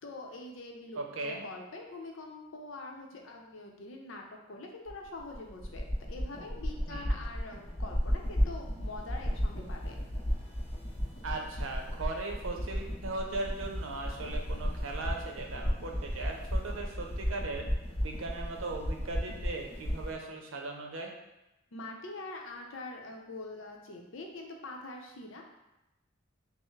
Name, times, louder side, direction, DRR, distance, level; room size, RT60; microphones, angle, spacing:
voice 1, 0.0-10.0 21.7-25.4, left 2 dB, 75° left, 1 dB, 0.6 m, -44 dB
voice 2, 1.0-1.4 6.9-7.2 11.2-17.6 18.0-21.1, right 3 dB, 80° right, 2 dB, 0.6 m, -38 dB
sound 1, 4.9-20.1, equal, 30° left, 0.6 m, -34 dB
5.6 x 2.0 x 3.1 m, 0.95 s
head